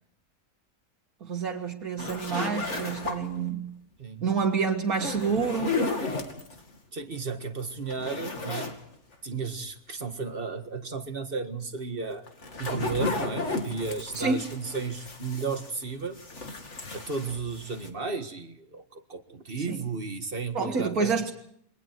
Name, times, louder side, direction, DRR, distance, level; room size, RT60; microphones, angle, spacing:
voice 1, 1.2-3.7 4.2-5.8 14.2-14.5 19.7-19.8 20.5-21.3, right 5 dB, 70° right, 0 dB, 2.2 m, -28 dB
sound 1, 2.0-3.5 4.9-6.6 7.2-7.3 7.6-8.8 9.1-9.2 12.0-15.8 16.1-17.9, left 3 dB, 50° left, 2.8 m, -34 dB
voice 2, 4.0-4.3 6.9-8.7 9.2-12.3 12.6-16.2 16.9-21.1, right 4 dB, 35° right, 7 dB, 1.9 m, -34 dB
28.5 x 23.0 x 4.6 m, 0.69 s
omnidirectional pair, 1.6 m